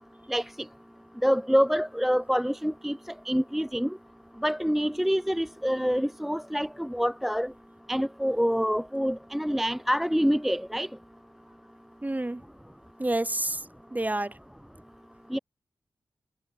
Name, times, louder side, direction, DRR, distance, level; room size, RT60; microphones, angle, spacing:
voice 1, 1.2-3.0 3.2-4.0 4.4-7.5 7.9-10.9 15.3-15.4, equal, 5° right, 0.8 m, -26 dB
voice 2, 12.0-12.4 13.0-14.4, right 1 dB, 20° right, 2.4 m, -29 dB
cardioid pair, 45°, 8 cm